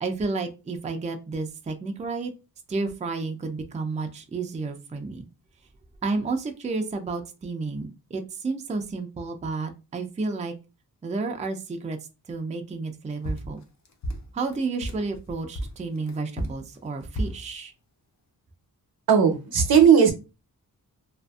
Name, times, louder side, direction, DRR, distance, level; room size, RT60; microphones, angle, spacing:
voice 1, 0.0-2.3 2.7-5.2 6.0-10.5 11.0-12.0 12.3-13.6 14.3-17.7, right 3 dB, 20° right, 5 dB, 0.4 m, -31 dB
sound 1, 13.2-15.1 15.5-17.5, right 1 dB, 50° left, 0.6 m, -32 dB
voice 2, 19.1-20.1, right 7 dB, 70° right, 4 dB, 0.7 m, -16 dB
2.5 x 2.4 x 2.3 m, 0.29 s
cardioid pair, 70°, 38 cm